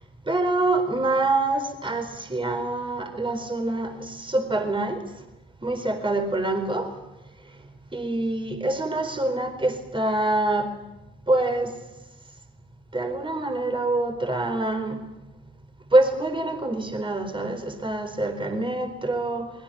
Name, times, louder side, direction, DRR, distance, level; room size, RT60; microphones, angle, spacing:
voice 1, 0.3-5.0 5.6-6.9 7.9-10.7 11.3-11.7 12.9-15.0 15.9-19.5, right 2 dB, 15° right, 6 dB, 4.3 m, -25 dB
24.5 x 21.5 x 6.9 m, 1.0 s
figure-of-eight pair, 45°, 30 cm